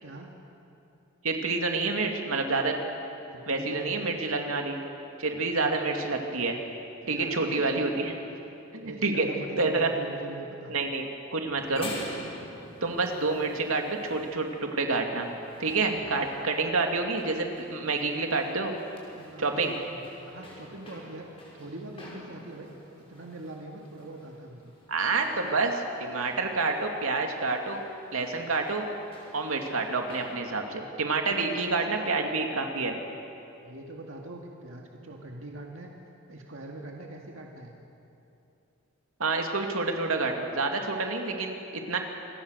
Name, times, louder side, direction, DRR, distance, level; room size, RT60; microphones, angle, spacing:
voice 1, 0.0-0.3 3.2-4.2 5.6-5.8 7.0-7.7 8.3-8.4 8.8-10.7 15.9-16.1 19.1-22.7 23.0-24.7 31.2-32.2 33.6-35.9 36.3-37.7, right 2 dB, 65° right, 0 dB, 2.0 m, -43 dB
voice 2, 1.2-2.8 3.5-4.8 5.2-6.6 7.1-8.2 8.7-9.9 10.7-11.9 12.8-15.3 15.6-18.8 19.4-19.7 24.9-27.8 28.1-28.9 29.3-33.0 39.2-42.0, right 3 dB, 85° right, 3 dB, 2.5 m, -28 dB
sound 1, 11.6-30.4, left 1 dB, 30° left, 5.6 m, -48 dB
27.5 x 22.5 x 6.6 m, 2.8 s
head